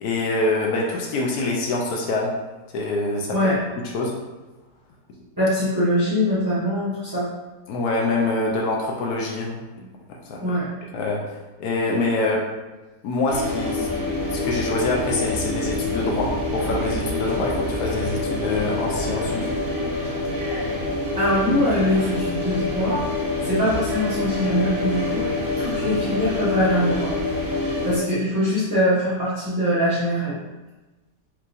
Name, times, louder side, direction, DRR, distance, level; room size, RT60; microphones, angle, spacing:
voice 1, 0.0-2.3 2.7-3.4 3.9-4.1 7.7-9.6 10.2-10.4 10.9-12.4 13.0-13.9 14.3-19.5, left 2 dB, 85° left, -1 dB, 1.2 m, -25 dB
voice 2, 5.4-7.3 10.4-10.7 21.2-23.0 23.4-25.3 25.6-27.1 27.8-30.4, equal, 15° right, -11 dB, 0.9 m, -22 dB
sound 1, 13.3-28.0, left 2 dB, 45° right, 1.0 m, -26 dB
4.6 x 3.4 x 2.5 m, 1.2 s
omnidirectional pair, 1.6 m